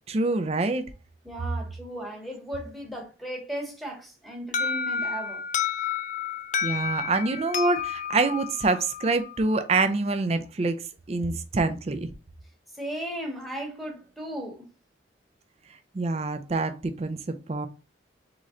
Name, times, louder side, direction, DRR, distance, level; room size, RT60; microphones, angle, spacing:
voice 1, 0.1-0.8 6.6-10.8 11.1-12.1 15.9-17.7, right 3 dB, 35° right, 0.4 m, -26 dB
voice 2, 1.2-5.4 12.8-14.6, equal, ahead, 1.1 m, -36 dB
Alarm, 4.5-9.3, left 6 dB, 40° left, 0.4 m, -30 dB
3.8 x 3.2 x 3.7 m
head